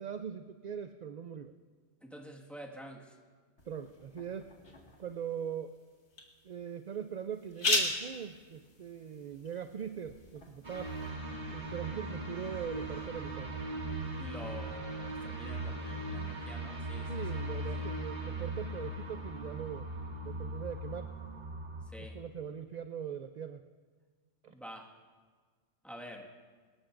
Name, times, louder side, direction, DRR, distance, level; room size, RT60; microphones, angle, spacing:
voice 1, 0.0-1.5 3.7-4.5 5.0-5.8 6.4-11.0 11.5-13.5 17.1-19.9 20.2-21.1 22.0-23.6 24.4-24.5, right 8 dB, 55° right, 9 dB, 0.5 m, -41 dB
voice 2, 2.0-3.1 14.2-17.1 21.9-22.1 24.5-24.8 25.8-26.3, equal, ahead, -1 dB, 1.6 m, -47 dB
sound 1, 3.6-11.1, left 2 dB, 70° left, 2.2 m, -38 dB
sound 2, 10.6-21.8, right 1 dB, 35° right, 2.2 m, -39 dB
23.0 x 20.0 x 2.6 m, 1.5 s
omnidirectional pair, 1.2 m